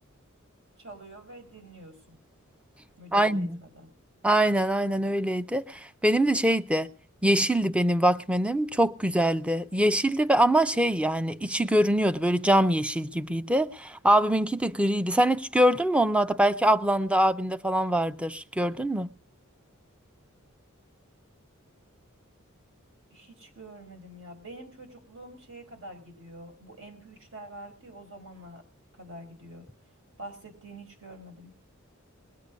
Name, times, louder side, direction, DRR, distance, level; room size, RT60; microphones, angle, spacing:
voice 1, 0.8-2.2 3.0-3.9 23.1-28.6 28.9-29.7 30.2-31.5, right 1 dB, 65° right, 5.3 m, -46 dB
voice 2, 3.1-3.6 4.2-6.9 7.2-19.1, right 1 dB, 5° right, 0.6 m, -24 dB
21.5 x 8.6 x 5.2 m
head